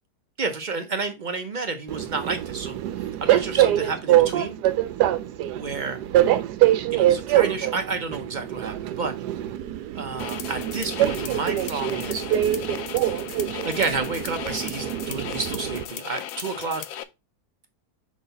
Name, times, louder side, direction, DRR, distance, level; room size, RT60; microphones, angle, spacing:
voice 1, 0.4-4.6 5.5-6.0 6.9-9.1 9.9-12.2 13.6-16.8, right 4 dB, 60° right, 0.5 m, -30 dB
Train, 1.9-15.8, right 13 dB, 80° right, 1.2 m, -24 dB
sound 1, 10.2-17.0, left 11 dB, 70° left, 0.9 m, -37 dB
6.1 x 3.9 x 4.0 m
omnidirectional pair, 1.7 m